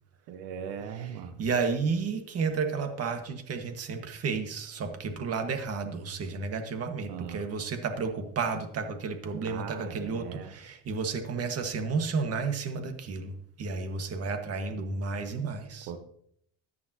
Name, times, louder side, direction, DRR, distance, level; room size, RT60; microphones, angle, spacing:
voice 1, 0.3-1.4 7.1-7.5 9.4-10.5 15.9-16.0, right 8 dB, 90° right, 7 dB, 1.4 m, -39 dB
voice 2, 1.4-15.9, right 4 dB, 40° right, 6 dB, 1.8 m, -32 dB
14.0 x 10.5 x 3.0 m, 0.67 s
cardioid pair, 125°, 35 cm